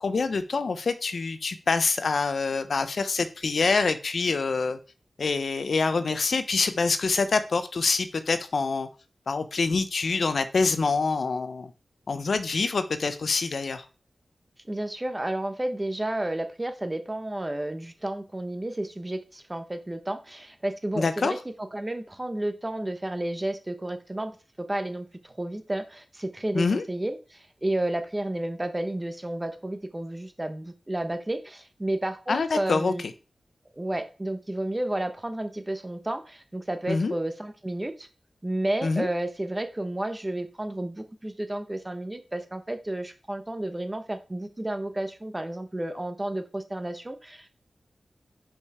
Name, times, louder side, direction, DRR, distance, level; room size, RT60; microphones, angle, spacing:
voice 1, 0.0-4.8 5.2-8.9 9.3-11.7 12.1-13.8 20.9-21.3 26.5-26.9 32.3-32.9 36.9-37.2 38.8-39.1, left 4 dB, 65° left, 11 dB, 0.6 m, -26 dB
voice 2, 14.7-24.3 24.6-33.0 33.7-38.1 38.4-47.5, right 1 dB, 20° right, 8 dB, 0.8 m, -31 dB
5.4 x 5.1 x 4.8 m, 0.34 s
wide cardioid pair, 125°, 0 cm